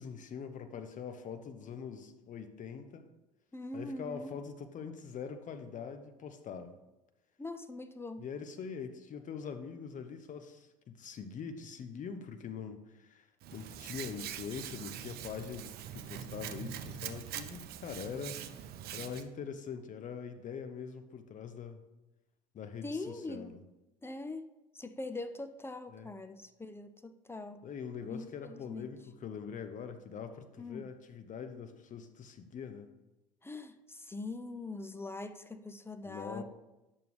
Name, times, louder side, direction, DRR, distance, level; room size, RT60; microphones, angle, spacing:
voice 1, 0.0-3.1 3.7-6.7 8.2-13.3 13.5-18.7 18.9-21.8 22.5-23.6 25.9-26.1 27.6-32.9 36.0-36.4, left 6 dB, 40° left, 8 dB, 0.9 m, -43 dB
voice 2, 3.5-4.3 7.4-8.2 22.8-23.5 24.0-24.5 24.7-27.6 28.1-28.9 30.6-30.8 33.4-36.4, left 2 dB, 10° left, 9 dB, 0.5 m, -42 dB
Hands, 13.4-19.2, right 10 dB, 50° right, 0.7 m, -43 dB
9.7 x 6.9 x 3.3 m, 1.0 s
hypercardioid pair, 70°, 20 cm